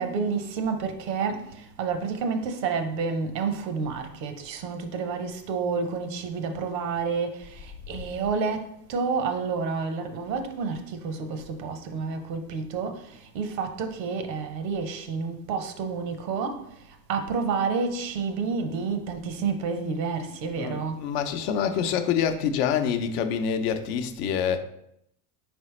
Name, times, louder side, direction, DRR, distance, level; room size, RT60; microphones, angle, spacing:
voice 1, 0.0-21.1, right 5 dB, 80° right, 0.8 m, -30 dB
voice 2, 20.6-24.6, left 7 dB, 70° left, 0.7 m, -26 dB
4.1 x 3.3 x 3.1 m
hypercardioid pair, 75°, 49 cm